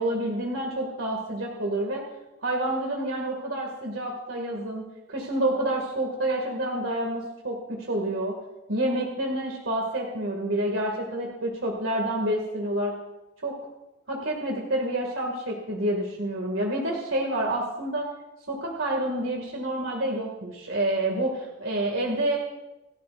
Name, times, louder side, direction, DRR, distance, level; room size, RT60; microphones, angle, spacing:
voice 1, 0.0-2.0 2.4-4.8 5.1-8.3 8.7-12.9 13.4-13.5 14.1-18.1 18.5-22.4, right 1 dB, 85° right, 0 dB, 2.4 m, -28 dB
27.5 x 13.0 x 2.6 m, 1.0 s
head